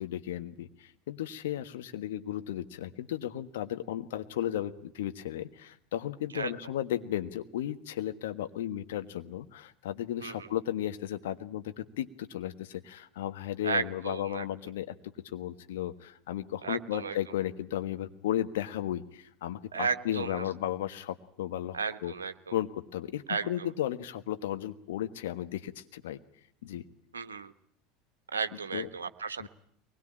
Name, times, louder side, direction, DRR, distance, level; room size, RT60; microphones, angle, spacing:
voice 1, 0.0-14.9 15.3-22.1 22.5-26.2 26.6-26.8 28.7-28.9 29.4-29.5, left 12 dB, 65° left, 9 dB, 1.5 m, -35 dB
voice 2, 13.6-14.4 16.6-17.2 19.7-20.4 21.7-22.5 23.3-23.7 27.1-27.5 28.3-29.5, right 5 dB, 80° right, 9 dB, 1.1 m, -34 dB
23.5 x 20.5 x 8.9 m, 0.66 s
figure-of-eight pair, 75°, 0 cm